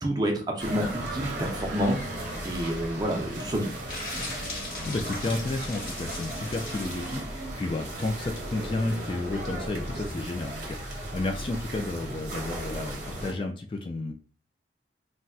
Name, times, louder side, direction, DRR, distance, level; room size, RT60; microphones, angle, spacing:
voice 1, 0.0-2.0 2.4-3.8, equal, 20° right, 2 dB, 0.6 m, -28 dB
sound 1, 0.6-13.3, right 1 dB, 45° right, 0.8 m, -36 dB
sound 2, 3.9-7.1, left 2 dB, 50° left, 1.2 m, -38 dB
voice 2, 4.9-14.1, left 2 dB, 30° left, 3 dB, 0.3 m, -32 dB
4.0 x 2.2 x 2.3 m, 0.38 s
head